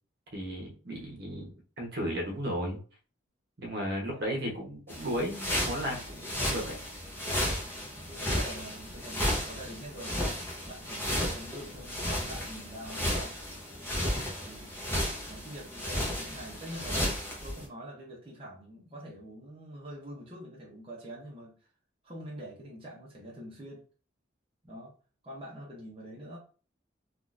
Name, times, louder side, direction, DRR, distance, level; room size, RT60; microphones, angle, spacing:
voice 1, 0.3-2.8 3.6-6.7 14.0-14.4, equal, 60° right, 0 dB, 1.0 m, -35 dB
sound 1, 4.9-17.7, equal, 10° left, 0.8 m, -33 dB
voice 2, 7.7-10.4 10.6-13.3 14.4-14.7 15.3-17.1 17.4-21.5 22.0-23.8 24.6-24.9 25.2-26.4, right 1 dB, 30° right, -5 dB, 0.8 m, -45 dB
3.6 x 2.4 x 2.5 m, 0.38 s
head